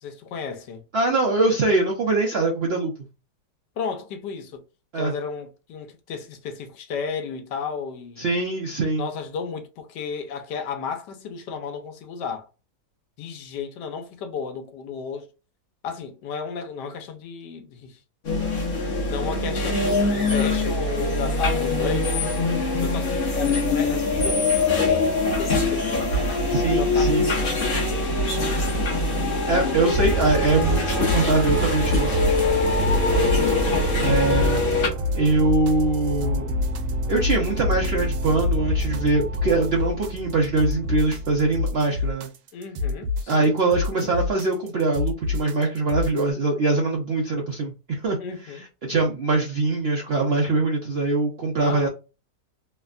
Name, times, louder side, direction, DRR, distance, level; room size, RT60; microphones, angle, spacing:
voice 1, 0.0-0.9 3.8-4.6 5.0-8.3 9.0-12.5 13.2-15.3 15.8-18.0 18.8-26.1 26.8-28.3 32.8-33.3 42.5-43.5 48.2-48.6 51.6-51.9, left 5 dB, 85° left, 1.3 m, -34 dB
voice 2, 0.9-2.9 4.9-5.1 8.2-9.1 26.5-27.3 29.5-32.2 34.0-34.6 35.1-36.5 37.1-42.3 43.3-48.2 48.5-51.9, right 2 dB, 70° right, 0.6 m, -23 dB
sound 1, 18.3-34.9, left 2 dB, 45° left, 0.8 m, -23 dB
sound 2, 29.9-46.3, left 1 dB, 90° right, 1.2 m, -26 dB
3.2 x 2.1 x 2.4 m
omnidirectional pair, 1.8 m